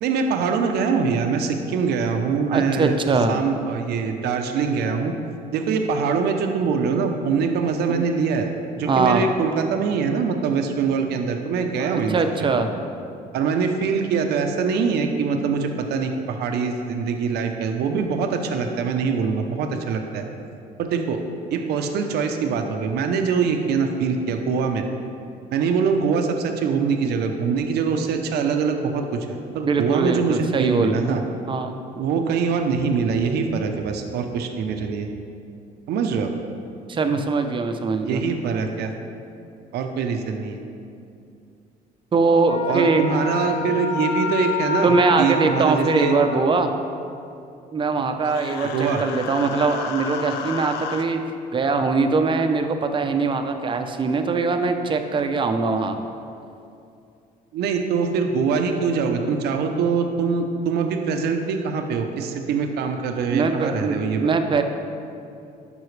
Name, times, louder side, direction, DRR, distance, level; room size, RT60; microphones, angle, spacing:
voice 1, 0.0-3.0 3.3-5.1 5.5-8.5 8.8-12.6 13.3-20.2 20.8-21.2 21.5-24.8 25.5-31.2 31.9-35.1 35.9-36.3 38.0-38.9 39.7-40.6 42.7-46.2 48.7-49.0 57.5-64.3, right 5 dB, 75° right, 5 dB, 0.7 m, -23 dB
voice 2, 2.5-3.4 7.9-8.0 8.9-9.2 11.8-12.7 29.7-31.8 36.9-38.2 42.1-43.6 44.8-46.7 47.7-51.2 51.5-56.0 63.3-64.6, right 4 dB, 30° right, 6 dB, 0.6 m, -22 dB
Wind instrument woodwind instrument, 42.5-46.6, left 6 dB, 40° left, 1.0 m, -28 dB
Human voice, 48.2-51.0, left 7 dB, 85° left, 0.6 m, -33 dB
12.0 x 5.5 x 3.2 m, 2.6 s
cardioid pair, 110°, 17 cm